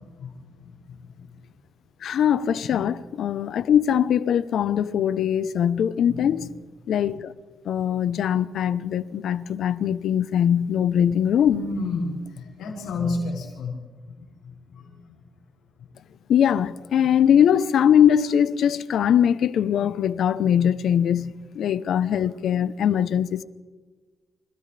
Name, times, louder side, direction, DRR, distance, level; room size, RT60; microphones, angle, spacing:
voice 1, 2.0-6.5 6.9-7.3 7.6-11.6 16.3-23.4, left 9 dB, 60° left, 0.9 m, -21 dB
voice 2, 11.4-13.8 14.1-15.2, left 3 dB, 80° left, 6.2 m, -31 dB
30.0 x 28.5 x 3.5 m
cardioid pair, 170°, 0 cm